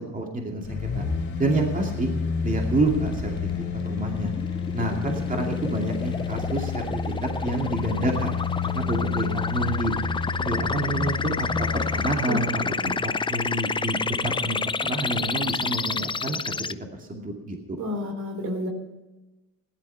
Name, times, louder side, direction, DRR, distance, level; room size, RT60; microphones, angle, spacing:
voice 1, 0.1-1.0 1.4-2.1 2.4-3.3 3.8-4.3 4.7-6.8 7.4-8.4 8.7-9.9 10.4-12.5 12.8-16.4 16.9-17.8, right 2 dB, 25° right, 1 dB, 2.4 m, -28 dB
sound 1, 0.6-12.2 12.6-12.7, left 5 dB, 50° left, 3.3 m, -30 dB
sound 2, 2.5-16.7, left 4 dB, 15° left, 0.4 m, -30 dB
voice 2, 17.8-18.7, left 1 dB, 65° right, 4 dB, 3.7 m, -30 dB
15.5 x 11.5 x 5.6 m, 1.1 s
cardioid pair, 90°, 30 cm